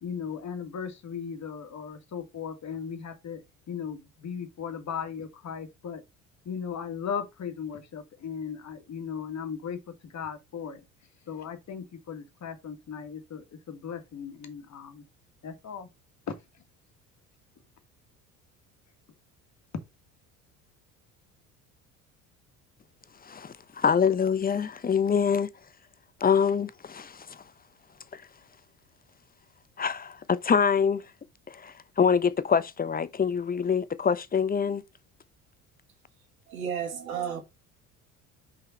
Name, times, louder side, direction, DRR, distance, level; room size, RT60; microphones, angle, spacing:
voice 1, 0.0-6.0 6.4-10.8 11.3-15.0 15.4-15.9 16.3-16.4, left 7 dB, 40° left, 1.7 m, -37 dB
voice 2, 23.2-25.5 26.2-27.4 28.1-28.2 29.8-31.0 31.5-34.8, left 6 dB, 20° left, 0.7 m, -25 dB
voice 3, 36.5-37.4, right 8 dB, 85° right, 1.8 m, -32 dB
5.7 x 5.1 x 4.1 m
hypercardioid pair, 65°, 41 cm